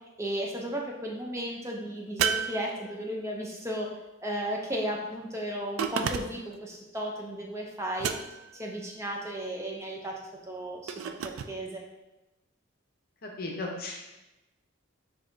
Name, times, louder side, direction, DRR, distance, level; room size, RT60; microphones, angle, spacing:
voice 1, 0.2-3.9 4.2-8.1 8.5-10.1 10.5-10.9 11.5-11.8, equal, 15° right, -1 dB, 0.4 m, -34 dB
sound 1, 2.2-3.3 5.8-6.6 8.0-8.6 10.9-11.5, right 7 dB, 85° right, 0.3 m, -31 dB
voice 2, 13.2-14.1, left 2 dB, 50° left, 1 dB, 0.7 m, -36 dB
6.3 x 2.8 x 2.6 m, 1.0 s
head